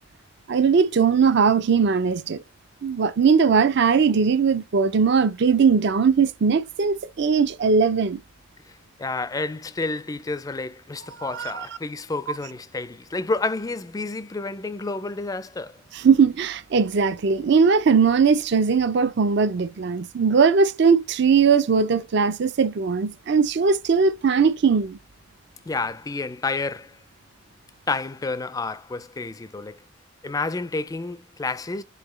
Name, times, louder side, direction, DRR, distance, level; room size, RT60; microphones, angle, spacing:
voice 1, 0.5-2.4 2.8-8.2 11.3-11.7 15.9-25.0, right 5 dB, 60° right, 0.5 m, -19 dB
voice 2, 9.0-15.8 25.7-27.0 27.9-29.8 30.2-31.8, left 3 dB, 20° left, 0.3 m, -30 dB
5.7 x 2.8 x 3.1 m
head